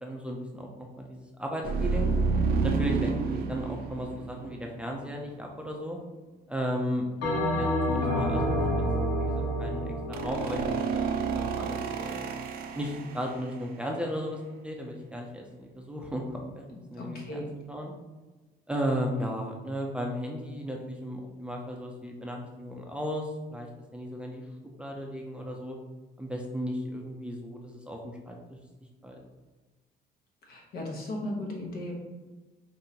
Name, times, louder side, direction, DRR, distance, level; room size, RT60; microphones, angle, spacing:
voice 1, 0.0-2.1 2.6-6.0 6.5-7.1 7.3-8.6 9.2-10.6 10.9-12.3 12.7-16.6 16.9-17.9 18.7-24.4 24.8-25.8 26.2-28.6 29.0-29.2, equal, 5° right, 0 dB, 0.5 m, -35 dB
sound 1, 1.6-5.1 10.1-13.7, right 5 dB, 65° right, 0.5 m, -30 dB
Bell, 7.2-11.8, equal, 85° left, 1.3 m, -29 dB
voice 2, 16.7-17.5 30.5-31.9, left 1 dB, 65° left, -1 dB, 1.2 m, -36 dB
5.1 x 2.6 x 2.9 m, 1.2 s
cardioid pair, 110°, 17 cm